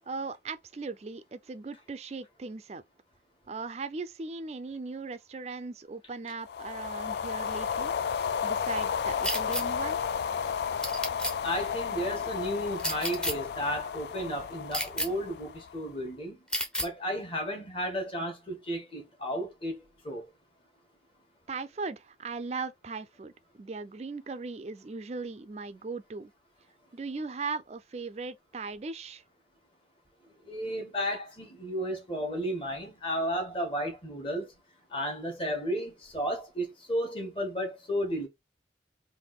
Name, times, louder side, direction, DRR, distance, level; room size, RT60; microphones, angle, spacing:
voice 1, 0.1-2.8 3.5-8.0 8.4-10.0 21.5-26.3 26.9-29.2, right 4 dB, 35° right, 0.4 m, -38 dB
sound 1, 6.4-15.9, left 7 dB, 65° left, 0.3 m, -33 dB
sound 2, 9.2-9.6 10.8-11.3 12.8-13.3 14.7-15.1 16.5-16.9, equal, 5° left, 0.6 m, -30 dB
voice 2, 11.4-16.4 16.8-19.8 20.0-20.2 30.5-34.5 34.9-38.3, equal, 30° left, 1.4 m, -33 dB
3.5 x 2.6 x 4.0 m
head